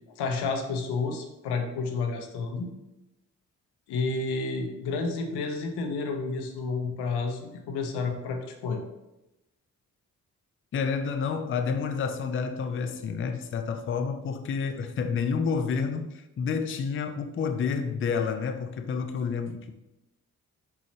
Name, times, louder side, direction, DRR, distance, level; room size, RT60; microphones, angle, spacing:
voice 1, 0.2-2.7 3.9-8.8, left 4 dB, 80° left, 4 dB, 0.6 m, -30 dB
voice 2, 10.7-19.7, left 5 dB, 35° left, 6 dB, 0.4 m, -29 dB
4.1 x 2.3 x 3.0 m, 0.94 s
supercardioid pair, 40°, 39 cm